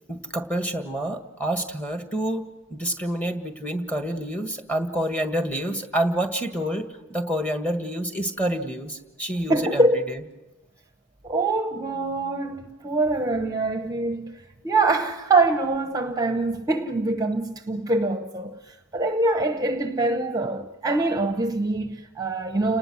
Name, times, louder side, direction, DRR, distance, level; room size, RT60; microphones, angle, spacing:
voice 1, 0.1-10.2, right 1 dB, 5° left, 1.6 m, -28 dB
voice 2, 9.5-10.0 11.2-22.8, right 2 dB, 20° right, 0.9 m, -24 dB
30.0 x 19.5 x 6.3 m
head